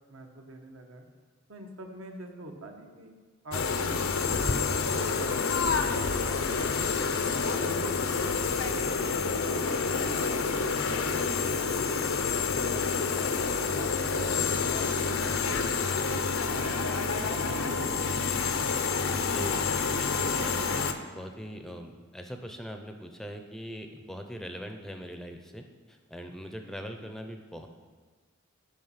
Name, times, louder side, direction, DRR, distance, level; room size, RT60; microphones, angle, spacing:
voice 1, 0.1-1.0 1.5-3.1 3.4-7.2 7.6-13.4 13.7-17.8 18.1-18.4, right 1 dB, 85° right, 2 dB, 1.1 m, -44 dB
sound 1, 3.5-20.9, left 5 dB, 85° left, 0.6 m, -28 dB
voice 2, 19.1-20.7 21.1-27.7, equal, ahead, 5 dB, 0.4 m, -41 dB
8.9 x 5.2 x 5.6 m, 1.5 s
head